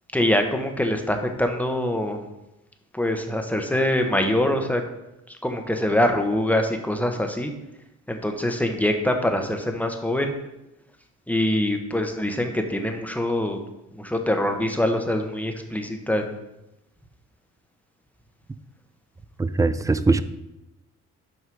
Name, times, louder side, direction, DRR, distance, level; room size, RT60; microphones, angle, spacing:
voice 1, 0.1-2.3 2.9-4.8 5.3-7.5 8.1-10.3 11.3-13.6 13.9-16.2, left 1 dB, 5° left, 4 dB, 0.9 m, -24 dB
voice 2, 19.4-20.2, right 3 dB, 10° right, 13 dB, 0.4 m, -21 dB
6.1 x 5.4 x 4.6 m, 0.92 s
cardioid pair, 90°, 30 cm